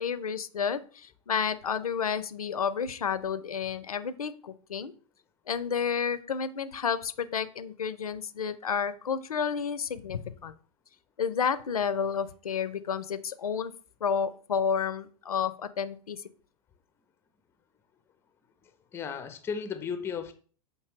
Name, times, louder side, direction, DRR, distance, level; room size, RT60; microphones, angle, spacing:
voice 1, 0.0-4.9 5.5-10.5 11.2-13.7 14.0-16.2, left 6 dB, 80° left, 0.4 m, -31 dB
voice 2, 18.9-20.3, left 6 dB, 15° left, 0.4 m, -34 dB
5.9 x 2.7 x 3.0 m
figure-of-eight pair, 95°, 19 cm